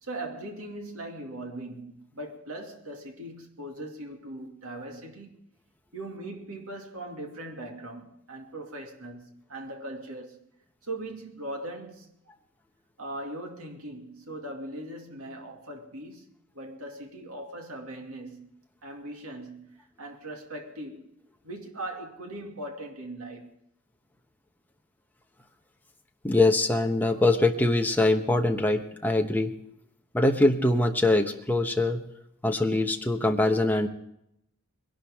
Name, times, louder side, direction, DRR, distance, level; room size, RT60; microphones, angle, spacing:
voice 1, 0.0-5.3 5.9-10.4 10.8-12.1 13.0-16.3 16.5-18.5 18.8-21.1 21.4-23.5, right 1 dB, 70° right, 2.4 m, -40 dB
voice 2, 26.2-29.5 30.1-32.0 32.4-33.9, left 2 dB, 10° left, 1.0 m, -23 dB
21.0 x 11.5 x 3.6 m
head